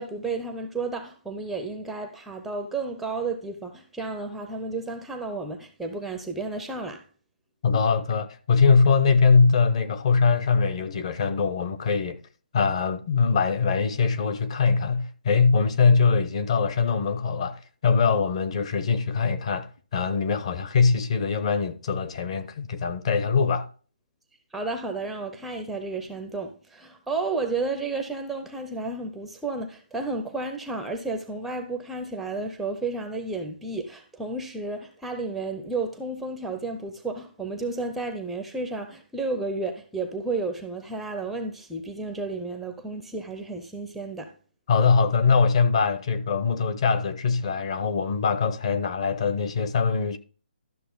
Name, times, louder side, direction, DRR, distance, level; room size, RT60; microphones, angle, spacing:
voice 1, 0.0-7.0 24.5-44.3, right 3 dB, ahead, 0.5 m, -32 dB
voice 2, 7.6-12.2 12.5-23.7 44.7-50.2, left 5 dB, 35° left, 0.8 m, -22 dB
12.0 x 6.3 x 3.9 m
hypercardioid pair, 165°, 5 cm